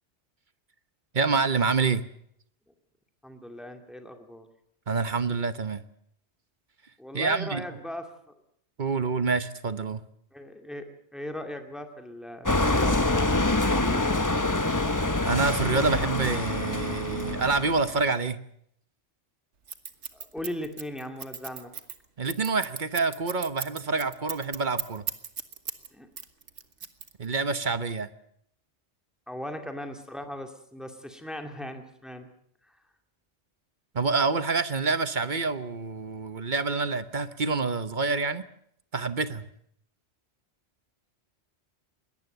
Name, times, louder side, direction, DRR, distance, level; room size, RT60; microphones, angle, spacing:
voice 1, 1.1-2.0 4.9-5.8 7.1-7.6 8.8-10.0 15.3-18.4 22.2-25.0 27.2-28.1 33.9-38.4 38.9-39.4, right 4 dB, 45° right, 13 dB, 1.1 m, -27 dB
voice 2, 3.2-4.5 7.0-8.1 10.3-14.3 20.1-21.7 25.9-26.1 29.3-32.3 32.6-32.8, left 1 dB, ahead, 5 dB, 2.3 m, -39 dB
sound 1, 12.5-18.0, left 2 dB, 15° left, 1.0 m, -26 dB
Scissors, 19.7-25.9 26.2-27.4, right 6 dB, 90° right, 1.7 m, -36 dB
22.0 x 18.0 x 8.0 m, 0.69 s
omnidirectional pair, 1.2 m